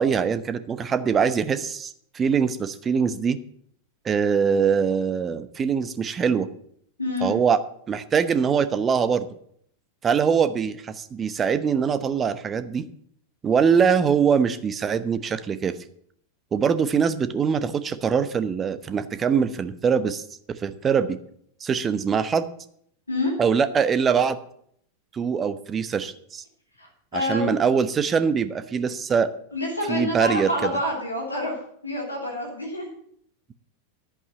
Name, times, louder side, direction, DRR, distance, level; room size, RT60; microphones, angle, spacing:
voice 1, 0.0-3.4 4.0-6.5 7.2-7.6 7.9-9.3 10.0-12.9 13.4-15.8 16.5-21.2 21.6-22.5 23.4-24.4 25.1-26.4 27.1-29.3 29.9-30.7, right 6 dB, 20° right, 13 dB, 0.9 m, -23 dB
voice 2, 7.0-7.4 23.1-23.3 26.8-27.5 29.5-31.6 31.8-32.9, left 1 dB, 80° left, -1 dB, 3.1 m, -27 dB
11.0 x 8.5 x 7.8 m, 0.66 s
figure-of-eight pair, 90°, 0 cm